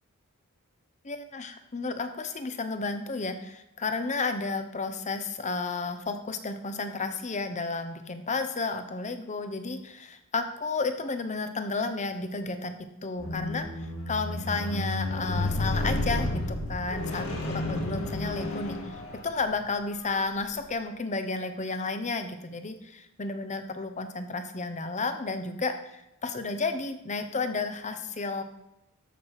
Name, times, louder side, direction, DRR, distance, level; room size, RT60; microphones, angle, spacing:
voice 1, 1.0-12.7 13.0-13.7 14.1-18.8 19.2-28.4, left 3 dB, 35° left, 8 dB, 0.9 m, -32 dB
Squeak, 13.2-19.5 20.3-20.4, left 1 dB, 70° left, 2.0 m, -31 dB
13.0 x 5.9 x 4.9 m, 0.88 s
head